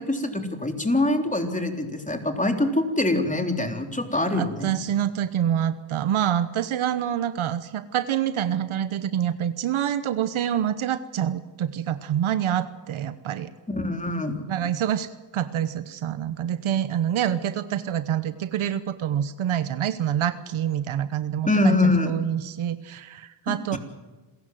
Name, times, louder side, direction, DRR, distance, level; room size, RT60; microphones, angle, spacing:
voice 1, 0.0-4.7 13.7-14.4 21.4-22.1 23.5-23.8, left 2 dB, 15° left, 5 dB, 3.6 m, -24 dB
voice 2, 4.3-13.5 14.5-23.8, right 10 dB, 80° right, 13 dB, 1.1 m, -26 dB
27.5 x 15.5 x 7.8 m, 1.2 s
cardioid pair, 65°, 48 cm